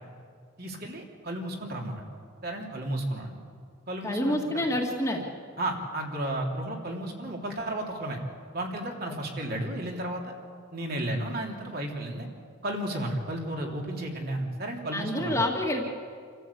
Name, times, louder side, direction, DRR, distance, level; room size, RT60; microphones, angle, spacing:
voice 1, 0.6-2.0 2.4-3.4 3.9-4.6 5.6-8.2 8.5-10.3 10.7-12.3 12.6-15.4, right 1 dB, 50° right, 0 dB, 3.1 m, -33 dB
voice 2, 4.0-5.3 14.9-15.9, left 1 dB, 15° left, 0 dB, 2.0 m, -27 dB
27.5 x 14.0 x 8.4 m, 2.1 s
head